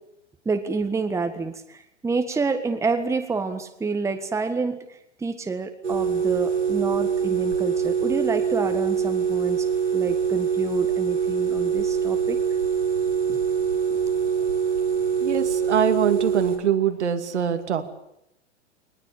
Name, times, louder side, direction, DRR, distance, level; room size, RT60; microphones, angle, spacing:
voice 1, 0.4-4.8 5.2-12.4 13.3-13.4, right 4 dB, 10° right, 7 dB, 1.6 m, -28 dB
sound 1, 5.8-16.6, right 7 dB, 90° right, 5.5 m, -24 dB
voice 2, 15.2-17.9, right 8 dB, 70° right, 7 dB, 2.5 m, -23 dB
21.0 x 20.5 x 8.9 m, 0.79 s
figure-of-eight pair, 110°, 36 cm